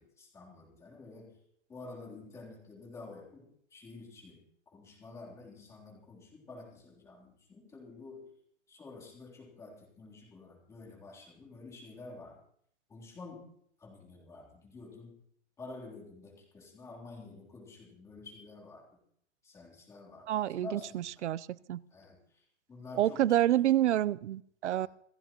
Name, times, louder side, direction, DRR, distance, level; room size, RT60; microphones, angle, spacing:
voice 1, 0.0-1.3 1.7-8.3 8.7-12.4 12.9-13.5 13.8-15.1 15.6-18.9 19.4-21.1 21.9-23.3 24.7-24.9, left 3 dB, 10° left, -2 dB, 3.5 m, -49 dB
voice 2, 20.3-21.8 22.9-24.9, right 12 dB, 75° right, 21 dB, 0.7 m, -28 dB
28.0 x 15.5 x 3.1 m, 0.66 s
supercardioid pair, 180°, 35 cm